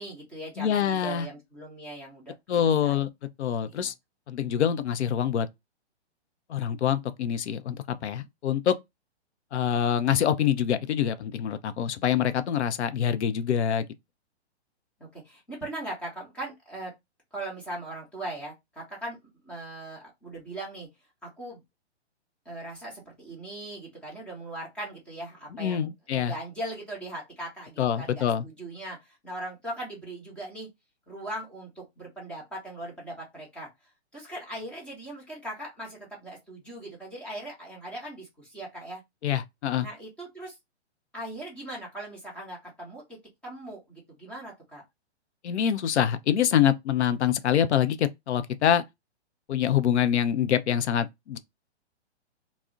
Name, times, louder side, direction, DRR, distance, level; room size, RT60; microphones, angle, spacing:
voice 1, 0.0-2.3 2.8-3.0 3.7-3.9 15.0-16.9 17.3-19.2 19.4-20.9 21.2-21.6 22.4-30.7 31.1-33.7 34.1-39.0 39.8-40.6 41.1-43.2 43.4-44.8, right 1 dB, 5° left, 0.7 m, -39 dB
voice 2, 0.6-1.3 2.5-3.1 3.4-3.9 4.3-5.5 6.5-8.7 9.5-13.8 25.6-26.3 27.8-28.4 39.2-39.9 45.4-48.8 49.5-51.4, left 9 dB, 75° left, 0.5 m, -25 dB
2.4 x 2.0 x 3.7 m
hypercardioid pair, 150°, 34 cm